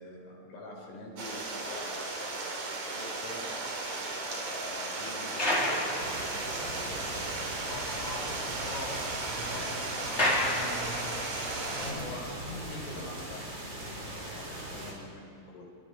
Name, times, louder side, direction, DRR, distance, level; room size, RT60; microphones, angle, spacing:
voice 1, 0.0-3.5 4.5-7.5 9.5-9.7 11.7-12.4 12.9-15.7, left 2 dB, 85° left, -2 dB, 7.6 m, -46 dB
Stream, 1.2-11.9, right 3 dB, 40° right, 4.2 m, -36 dB
sound 1, 3.3-6.9 7.3-7.4 7.7-7.8 8.1-11.4 12.0-12.2, left 1 dB, 15° left, 4.0 m, -34 dB
sound 2, 6.0-14.9, right 1 dB, 25° right, 4.5 m, -40 dB
voice 2, 7.7-11.2 11.8-11.9 12.4-13.1, left 1 dB, 35° left, -2 dB, 5.9 m, -42 dB
27.0 x 26.5 x 5.2 m, 2.5 s
omnidirectional pair, 5.8 m